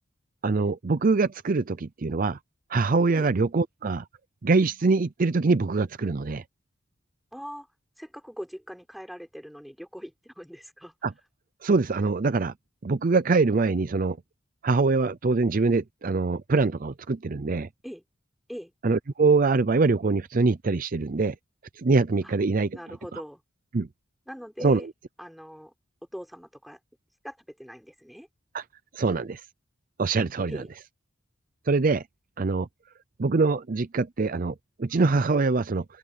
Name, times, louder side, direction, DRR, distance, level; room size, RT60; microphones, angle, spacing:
voice 1, 0.4-2.4 2.7-4.0 4.4-6.4 11.0-11.1 11.6-12.5 12.8-14.2 14.6-17.7 18.8-21.3 21.8-23.2 23.7-23.9 24.6-24.8 28.5-28.6 28.9-29.4 30.0-30.6 31.7-32.0 32.4-32.7 33.2-35.8, right 3 dB, 45° right, 0.5 m, -24 dB
voice 2, 7.3-7.7 8.0-10.9 17.8-18.0 18.5-18.7 22.2-22.3 22.7-23.4 24.3-24.9 25.2-25.7 26.1-26.8 27.2-28.3 30.5-30.7, equal, ahead, 4.3 m, -41 dB
head